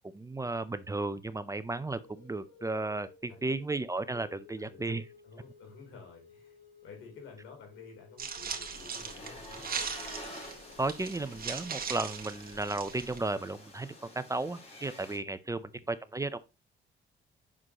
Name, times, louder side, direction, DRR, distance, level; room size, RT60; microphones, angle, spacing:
voice 1, 0.1-5.0 10.8-16.4, right 2 dB, 15° right, 0.5 m, -34 dB
sound 1, 2.0-12.6, left 6 dB, 50° left, 1.8 m, -57 dB
voice 2, 4.6-4.9 5.2-6.6 6.8-9.7 15.7-15.9, left 5 dB, 80° left, 3.4 m, -51 dB
sound 2, 8.2-13.2, right 6 dB, 50° right, 1.6 m, -39 dB
sound 3, 8.7-15.2, left 1 dB, 30° left, 3.8 m, -49 dB
7.4 x 6.2 x 2.9 m
cardioid pair, 90°, 20 cm